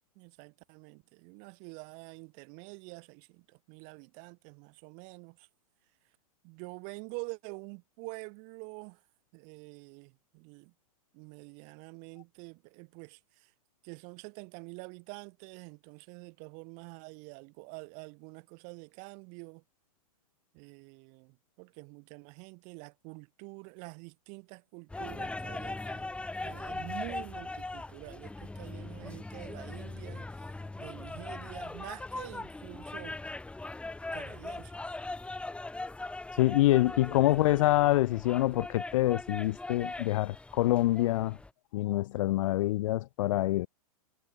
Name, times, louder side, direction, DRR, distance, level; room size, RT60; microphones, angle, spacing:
voice 1, 0.2-5.5 6.4-9.0 9.3-10.7 11.1-13.5 13.8-19.6 20.5-26.1 26.4-33.2 34.1-35.0, right 38 dB, 40° right, 5.4 m, -47 dB
sound 1, 24.9-41.5, left 2 dB, 5° left, 5.1 m, -40 dB
voice 2, 36.4-41.4 41.7-43.7, left 16 dB, 55° left, 0.7 m, -26 dB
hypercardioid pair, 135°, 19 cm